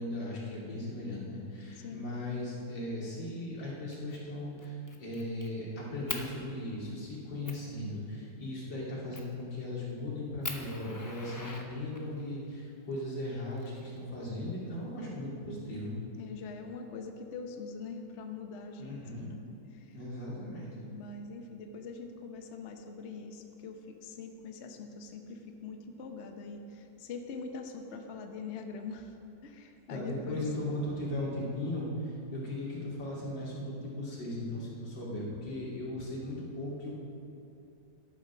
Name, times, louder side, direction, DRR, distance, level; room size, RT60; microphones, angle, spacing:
voice 1, 0.0-15.9 18.8-19.3 19.9-20.9 29.9-36.9, left 1 dB, 85° left, -5 dB, 3.4 m, -37 dB
Fire, 3.9-4.2 4.6-5.5 6.1-6.3 6.9-7.0 7.5-7.7 9.1-9.4 9.9-10.0 10.4-12.2 13.3-14.2, left 2 dB, 30° left, 0.3 m, -41 dB
voice 2, 16.2-19.0 19.3-19.4 19.7-19.9 20.3-20.5 20.9-29.1 29.4-30.5, left 4 dB, 50° left, 4 dB, 0.9 m, -43 dB
12.0 x 8.7 x 6.0 m, 2.6 s
omnidirectional pair, 2.0 m